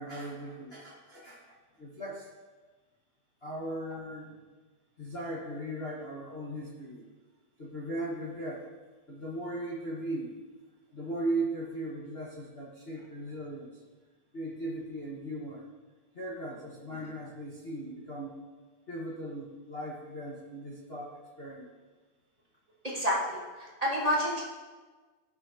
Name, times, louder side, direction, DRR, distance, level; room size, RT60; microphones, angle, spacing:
voice 1, 0.0-2.3 3.4-4.3 5.0-7.0 7.6-8.6 9.1-10.3 10.9-13.7 14.3-15.6 16.1-18.3 18.9-21.7, right 1 dB, 75° left, -6 dB, 0.5 m, -38 dB
voice 2, 22.8-24.4, equal, 15° right, -6 dB, 1.4 m, -29 dB
15.0 x 6.6 x 2.8 m, 1.3 s
omnidirectional pair, 3.4 m